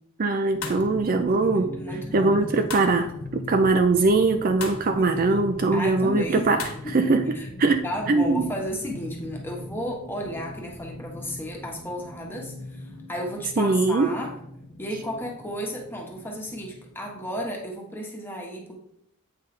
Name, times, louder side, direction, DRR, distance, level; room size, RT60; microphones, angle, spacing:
voice 1, 0.2-1.7 2.1-3.1 3.5-6.6 6.9-8.5 13.6-14.1, right 3 dB, 40° right, 7 dB, 0.4 m, -21 dB
sound 1, 0.5-17.7, left 2 dB, 35° left, 0.7 m, -40 dB
sound 2, 0.6-0.9 2.7-3.0 4.6-4.8 6.6-6.8, left 6 dB, 80° left, 1.3 m, -35 dB
voice 2, 1.5-2.5 5.0-6.5 7.0-7.5 7.8-14.3 14.8-18.8, equal, 10° left, -1 dB, 1.3 m, -33 dB
8.3 x 5.7 x 3.3 m, 0.76 s
head